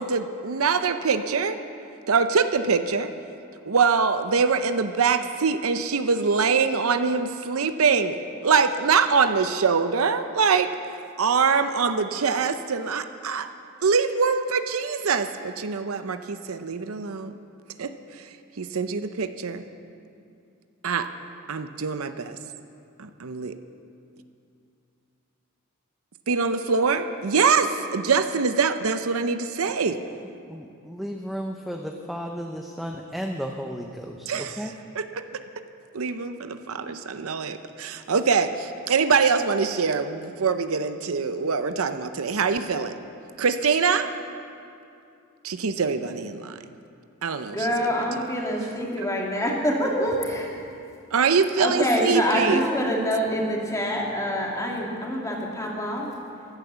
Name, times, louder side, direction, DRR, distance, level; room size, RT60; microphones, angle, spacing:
voice 1, 0.0-1.6 2.1-3.1 3.7-10.7 11.2-13.5 13.8-17.4 17.8-19.6 20.8-21.1 21.5-22.4 23.0-23.6 26.3-27.7 27.9-30.0 34.3-34.7 34.9-35.2 35.9-43.0 43.4-44.1 45.4-46.6 47.2-47.9 51.1-52.6, right 5 dB, 75° right, 9 dB, 0.7 m, -24 dB
voice 2, 30.5-34.7 51.9-52.9, equal, ahead, 1 dB, 0.7 m, -33 dB
voice 3, 47.5-50.5 51.6-56.1, equal, 15° left, -2 dB, 2.3 m, -26 dB
15.0 x 12.0 x 6.9 m, 2.5 s
head